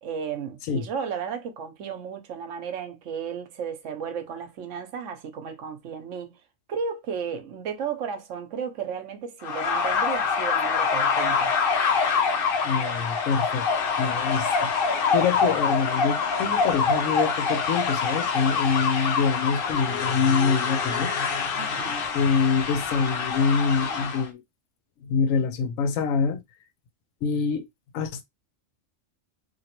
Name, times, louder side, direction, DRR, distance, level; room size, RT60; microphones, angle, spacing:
voice 1, 0.0-6.4 6.7-11.5 21.5-22.0, right 6 dB, 75° right, 1.0 m, -34 dB
sound 1, 9.4-24.3, left 5 dB, 55° left, 0.7 m, -25 dB
voice 2, 12.6-13.7 14.0-21.1 22.1-24.4 25.0-26.4 27.2-27.7 27.9-28.2, left 5 dB, 85° left, 1.0 m, -25 dB
3.0 x 2.6 x 2.9 m
omnidirectional pair, 1.3 m